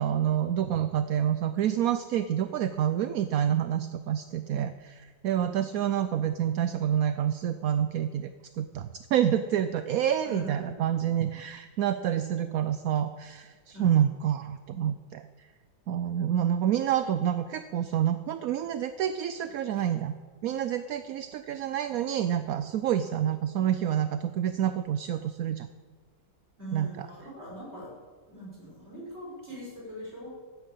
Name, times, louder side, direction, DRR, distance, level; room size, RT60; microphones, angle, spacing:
voice 1, 0.0-8.3 8.6-13.5 13.8-15.2 15.9-20.1 20.4-25.7 26.7-27.1, right 10 dB, 70° right, 11 dB, 0.9 m, -28 dB
voice 2, 5.3-5.7 10.2-10.8 13.7-14.1 19.8-19.9 26.6-27.9 28.3-30.3, right 1 dB, 35° right, -4 dB, 6.3 m, -42 dB
14.0 x 9.3 x 8.4 m, 1.5 s
omnidirectional pair, 1.9 m